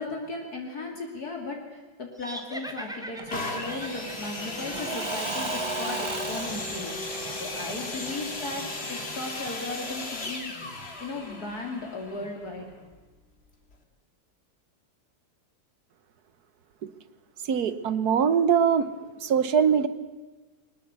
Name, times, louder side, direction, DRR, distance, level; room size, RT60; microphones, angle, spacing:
voice 1, 0.0-10.5 11.0-12.7, left 3 dB, 60° left, 1 dB, 3.2 m, -36 dB
sound 1, 2.2-5.6, equal, ahead, 1.9 m, -41 dB
Engine / Mechanisms / Drill, 3.2-9.9, right 4 dB, 45° right, 0.3 m, -37 dB
sound 2, 3.3-13.0 13.7-13.8, left 3 dB, 35° left, 2.4 m, -36 dB
voice 2, 17.4-18.9 19.2-19.9, right 7 dB, 65° right, 14 dB, 1.4 m, -22 dB
21.5 x 19.5 x 8.1 m, 1.2 s
omnidirectional pair, 1.8 m